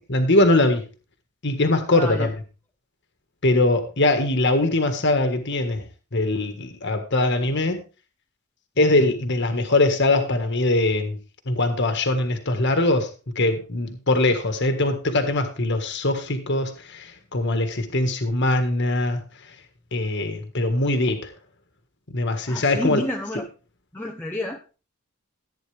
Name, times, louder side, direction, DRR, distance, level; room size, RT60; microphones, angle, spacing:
voice 1, 0.1-0.8 1.4-2.3 3.4-5.9 6.1-7.8 8.8-11.2 11.5-13.1 13.3-19.2 19.9-21.3 22.1-23.0, left 2 dB, 55° left, 7 dB, 1.6 m, -22 dB
voice 2, 1.9-2.3 22.5-23.5 23.9-24.6, left 1 dB, 10° left, 1 dB, 0.9 m, -29 dB
14.5 x 9.1 x 3.5 m, 0.34 s
head